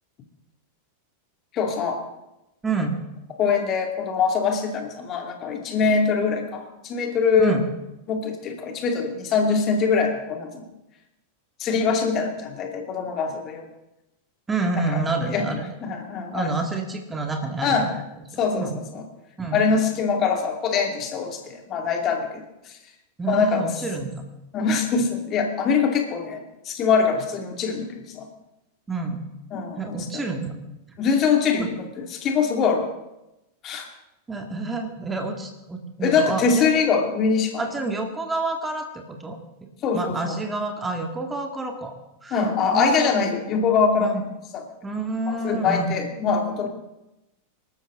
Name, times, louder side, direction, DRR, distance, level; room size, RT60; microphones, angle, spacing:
voice 1, 1.5-2.1 3.4-7.6 8.1-10.7 11.6-13.6 14.9-15.0 15.3-15.5 15.8-16.5 17.6-17.9 18.4-19.0 19.5-22.7 23.3-23.7 24.5-28.3 29.5-30.2 31.0-31.7 32.1-32.9 33.6-33.9 36.0-37.6 39.8-40.3 42.3-44.2 44.5-44.6 45.3-46.7, left 5 dB, 30° left, 3 dB, 2.6 m, -23 dB
voice 2, 2.6-3.0 7.4-7.7 14.5-15.7 16.3-18.0 18.3-18.8 19.4-19.6 23.2-24.2 28.9-29.3 29.8-30.6 31.6-31.7 34.3-36.7 37.6-39.4 39.9-41.9 42.2-42.5 42.7-43.3 44.0-44.2 44.8-45.9, right 3 dB, 15° right, 4 dB, 2.2 m, -28 dB
25.5 x 13.0 x 3.8 m, 0.94 s
figure-of-eight pair, 90°, 0 cm